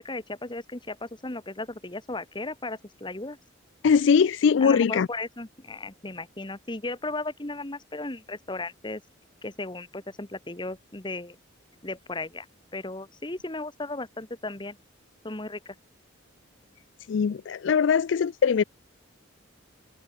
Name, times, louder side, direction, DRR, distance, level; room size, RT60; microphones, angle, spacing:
voice 1, 0.0-3.4 4.6-9.0 9.4-11.4 11.8-12.5 12.7-14.8 15.2-15.7, left 2 dB, 25° left, 1.6 m, -35 dB
voice 2, 3.8-5.1 17.1-18.6, left 6 dB, 65° left, 0.4 m, -21 dB
open air
head